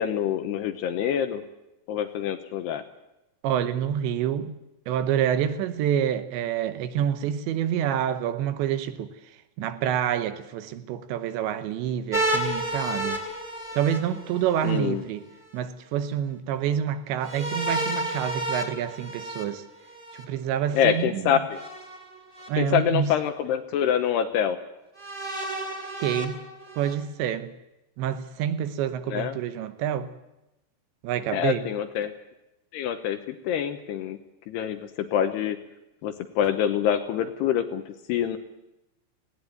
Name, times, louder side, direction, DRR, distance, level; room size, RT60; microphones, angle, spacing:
voice 1, 0.0-1.4 1.9-2.8 14.6-15.0 20.7-21.6 22.6-24.6 29.1-29.4 31.3-32.1 32.7-34.2 34.5-35.6 36.0-38.4, left 9 dB, 75° left, 2.6 m, -26 dB
voice 2, 3.4-4.6 4.9-9.1 9.6-13.2 13.7-15.2 15.5-19.6 20.2-21.4 22.5-23.1 26.0-26.4 26.8-27.5 28.0-30.1 31.0-31.7, right 9 dB, 75° right, 3.1 m, -27 dB
sound 1, 12.1-14.8 17.2-20.2 21.5-22.5 23.2-23.3 25.0-26.9, right 1 dB, 15° right, 2.4 m, -31 dB
19.0 x 17.5 x 9.4 m
omnidirectional pair, 5.5 m